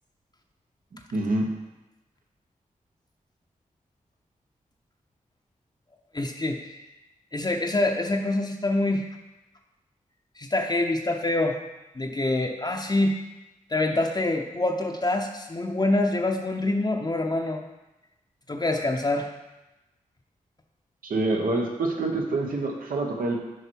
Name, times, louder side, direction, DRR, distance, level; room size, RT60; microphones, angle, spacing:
voice 1, 1.1-1.5 21.0-23.4, right 2 dB, 80° right, 0 dB, 1.2 m, -26 dB
voice 2, 6.1-6.8 7.3-9.1 10.4-11.6 12.0-13.2 13.7-17.6 18.5-19.3, left 2 dB, 30° left, 2 dB, 0.8 m, -25 dB
6.9 x 4.8 x 4.6 m, 1.0 s
cardioid pair, 50°, 15 cm